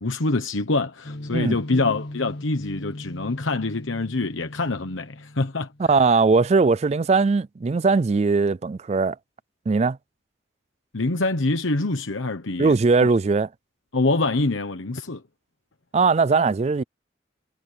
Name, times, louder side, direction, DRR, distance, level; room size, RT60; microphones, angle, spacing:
voice 1, 0.0-5.7 10.9-12.7 13.9-15.2, left 2 dB, 85° left, 1.2 m, -25 dB
sound 1, 1.0-5.9, left 1 dB, 60° left, 1.9 m, -38 dB
voice 2, 5.8-9.2 9.7-10.0 12.6-13.5 15.9-16.8, right 4 dB, 35° right, 0.3 m, -20 dB
head